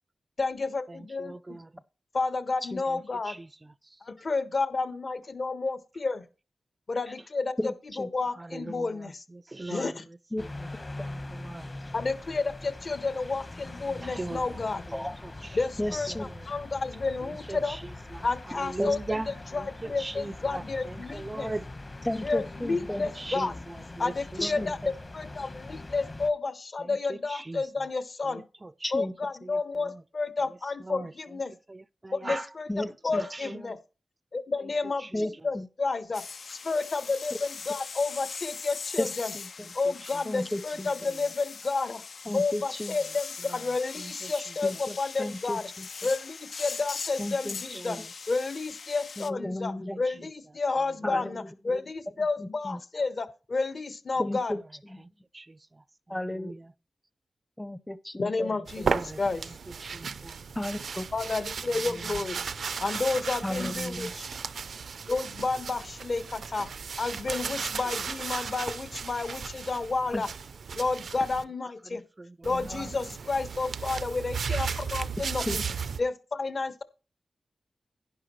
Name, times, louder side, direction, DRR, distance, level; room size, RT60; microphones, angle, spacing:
voice 1, 0.4-1.6 2.1-3.4 4.0-6.2 6.9-9.2 9.7-10.1 11.9-14.8 15.5-17.8 18.2-21.5 22.2-23.6 24.0-24.8 25.1-28.4 28.9-31.5 32.1-33.8 34.3-36.2 36.5-39.3 39.7-42.0 42.3-45.7 46.0-48.0 48.3-54.6 58.2-59.5 61.1-62.4 62.8-64.3 65.1-66.7 67.0-70.3 70.7-72.0 72.4-75.6 76.0-76.8, left 3 dB, 55° left, 1.4 m, -31 dB
voice 2, 0.9-1.7 2.9-3.5 8.4-10.0 10.4-10.7 11.0-11.7 14.0-14.4 15.0-15.6 16.1-16.5 17.3-17.8 18.1-19.3 19.5-21.7 22.7-22.9 23.2-24.7 26.8-27.6 28.3-28.7 29.0-29.1 29.4-29.6 29.9-30.0 30.8-31.1 31.7-32.5 33.1-33.7 35.1-35.2 43.5-43.6 44.0-44.3 47.8-48.1 49.9-50.0 51.1-51.2 55.3-55.6 56.3-56.7 58.8-59.2 59.8-60.4 61.9-62.2 71.9-72.9, right 2 dB, 30° right, 0.4 m, -39 dB
voice 3, 7.6-8.1 10.3-10.4 14.9-15.1 15.8-16.2 18.8-18.9 22.0-23.1 24.4-24.9 28.8-29.1 32.7-33.2 35.1-35.7 39.0-39.1 39.3-39.5 40.3-40.9 42.3-43.0 44.6-45.9 47.2-47.8 49.2-50.0 51.0-51.8 52.4-52.8 54.2-54.6 54.9-55.0 56.1-56.5 57.6-58.5 60.6-61.0 63.4-64.1 70.1-70.2 75.5-75.6, left 1 dB, 10° left, 0.7 m, -33 dB
sound 1, 10.4-26.3, left 2 dB, 35° left, 1.2 m, -42 dB
sound 2, 36.1-49.3, left 5 dB, 75° left, 0.5 m, -41 dB
sound 3, 58.7-71.4 72.4-76.0, right 6 dB, 85° right, 0.5 m, -35 dB
11.0 x 10.5 x 3.2 m
cardioid pair, 65°, 0 cm